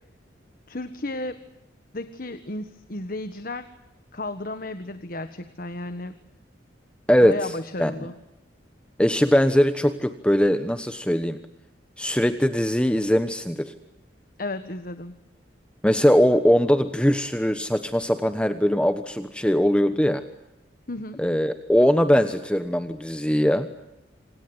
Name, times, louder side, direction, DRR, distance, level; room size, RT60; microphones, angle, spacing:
voice 1, 0.7-1.4 1.9-3.7 4.1-6.1 7.2-8.1 14.4-15.1 20.9-21.2, left 2 dB, 50° left, 10 dB, 1.5 m, -33 dB
voice 2, 9.0-11.4 12.0-13.7 15.8-20.2 21.2-23.7, equal, 5° left, 9 dB, 1.1 m, -21 dB
27.5 x 27.0 x 8.0 m, 0.90 s
head